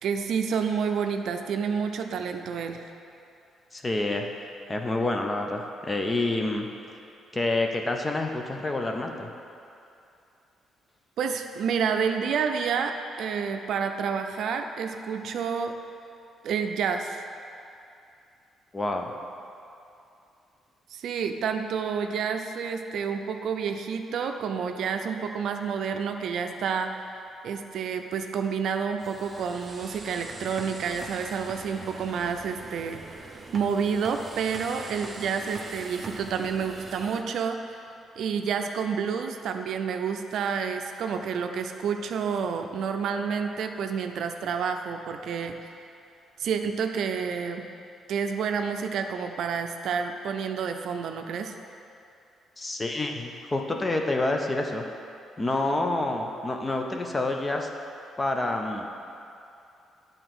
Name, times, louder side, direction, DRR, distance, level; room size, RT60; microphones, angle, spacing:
voice 1, 0.0-2.9 11.2-12.9 13.2-15.8 16.4-17.2 20.9-27.0 27.4-33.2 33.5-37.6 38.2-45.7 46.4-47.7 48.1-51.5, right 6 dB, 70° right, 5 dB, 0.5 m, -29 dB
voice 2, 3.7-4.3 4.7-6.7 7.3-9.3 18.7-19.1 52.6-54.8 55.4-57.7 58.2-58.9, left 2 dB, 25° left, 3 dB, 0.8 m, -28 dB
sound 1, 29.0-37.2, right 3 dB, 30° right, 0.7 m, -43 dB
9.1 x 3.9 x 6.1 m, 2.6 s
cardioid pair, 90°, 0 cm